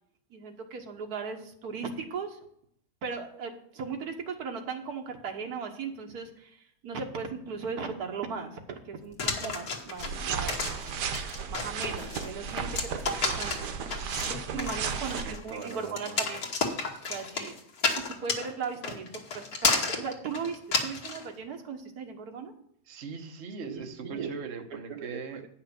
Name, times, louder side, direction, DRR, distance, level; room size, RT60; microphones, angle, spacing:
voice 1, 0.3-2.4 3.0-10.7 11.4-16.4 17.0-17.6 17.9-19.1 19.3-22.5 23.6-24.3 24.7-25.5, right 5 dB, 70° right, 4 dB, 1.7 m, -38 dB
sound 1, 9.2-21.2, left 4 dB, 65° left, 1.8 m, -31 dB
sound 2, 10.0-15.3, right 6 dB, 85° right, 1.5 m, -34 dB
voice 2, 14.5-16.3 22.9-25.4, right 5 dB, 45° right, 5 dB, 1.2 m, -40 dB
9.4 x 5.7 x 6.6 m, 0.68 s
omnidirectional pair, 1.7 m